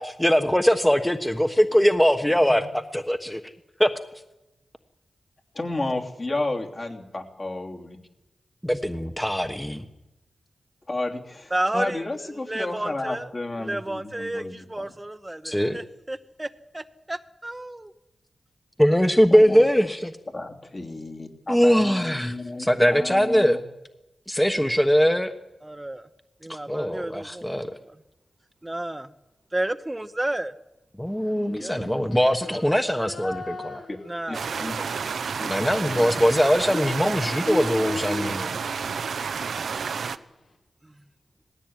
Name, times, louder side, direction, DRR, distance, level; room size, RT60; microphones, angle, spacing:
voice 1, 0.0-3.4 3.8-3.9 8.6-9.8 15.4-15.8 18.8-20.1 21.5-23.6 24.3-25.3 26.5-27.8 31.0-33.8 35.5-38.6, equal, 5° left, 8 dB, 1.2 m, -21 dB
voice 2, 5.5-8.0 10.9-14.8 19.3-19.6 20.3-23.6 33.9-34.0 34.3-34.8 35.4-36.1 36.7-36.9 37.4-38.3, left 2 dB, 45° left, 2 dB, 3.0 m, -32 dB
voice 3, 11.5-13.3 13.6-16.5 16.7-17.9 24.6-24.7 25.6-26.1 26.4-27.9 28.6-29.1 29.5-30.5 31.6-31.8 34.1-35.0, right 1 dB, 20° right, 10 dB, 0.9 m, -32 dB
Female singing, 31.2-35.1 35.4-39.7, left 3 dB, 80° left, 4.3 m, -43 dB
sound 1, 34.3-40.2, right 6 dB, 80° right, 0.7 m, -30 dB
19.0 x 15.5 x 9.2 m, 0.97 s
cardioid pair, 45°, 0 cm